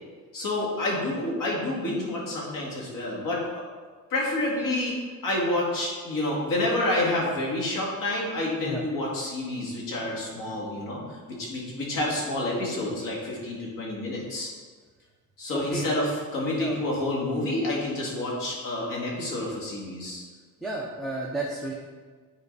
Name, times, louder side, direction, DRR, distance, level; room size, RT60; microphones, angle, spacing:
voice 1, 0.3-3.4 4.1-5.0 5.2-11.0 11.3-14.5 15.4-20.2, left 1 dB, 75° left, -3 dB, 2.4 m, -28 dB
voice 2, 15.5-15.9 16.5-16.8 20.6-21.7, right 2 dB, ahead, -3 dB, 0.7 m, -32 dB
9.7 x 4.5 x 4.1 m, 1.5 s
cardioid pair, 165°, 33 cm